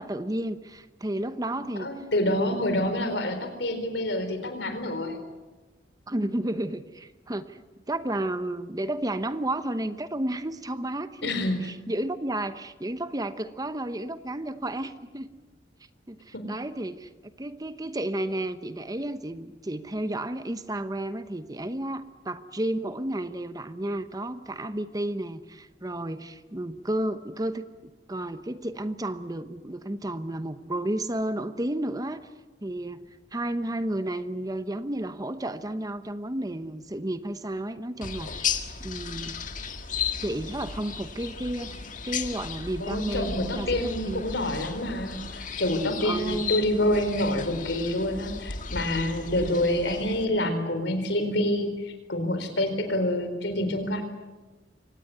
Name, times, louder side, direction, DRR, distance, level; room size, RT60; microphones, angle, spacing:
voice 1, 0.0-1.9 2.3-2.7 6.1-15.3 16.1-27.6 28.1-32.2 32.6-38.6 38.8-39.4 40.2-44.2 46.0-46.4 49.4-49.6, right 1 dB, 20° right, 11 dB, 0.9 m, -32 dB
voice 2, 1.6-5.2 11.2-11.6 16.3-16.5 42.8-54.0, left 1 dB, 70° left, 8 dB, 4.3 m, -27 dB
sound 1, 38.0-50.2, left 6 dB, 45° left, 1.8 m, -35 dB
24.5 x 18.5 x 9.4 m, 1.2 s
head